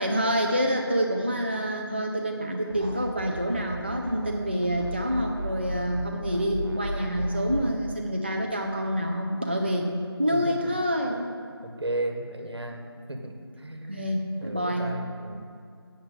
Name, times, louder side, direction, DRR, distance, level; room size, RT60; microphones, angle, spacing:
voice 1, 0.0-9.9 10.2-11.3 13.9-14.9, equal, 25° right, 1 dB, 0.4 m, -27 dB
sound 1, 2.7-4.4 4.6-7.8, right 1 dB, 55° right, 1.1 m, -35 dB
voice 2, 10.3-10.7 11.6-12.8 13.1-14.1 14.4-15.5, right 2 dB, 80° right, 4 dB, 1.5 m, -34 dB
7.3 x 6.9 x 8.0 m, 2.4 s
figure-of-eight pair, 175°, 13 cm